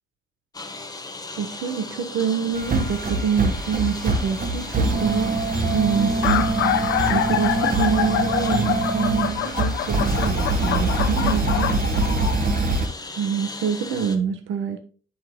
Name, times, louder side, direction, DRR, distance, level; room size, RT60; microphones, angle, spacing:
Engine, 0.5-14.2, left 3 dB, 20° left, 1.3 m, -37 dB
voice 1, 1.4-5.4 5.7-6.5 7.1-11.7 13.2-14.8, right 7 dB, 85° right, 1.2 m, -26 dB
sound 1, 2.5-12.9, right 2 dB, 45° right, 1.7 m, -24 dB
sound 2, 4.1-4.4 5.3-5.4 5.5-5.6 6.0-12.4, left 10 dB, 85° left, 0.8 m, -26 dB
11.0 x 5.7 x 2.3 m
cardioid pair, 90°, 20 cm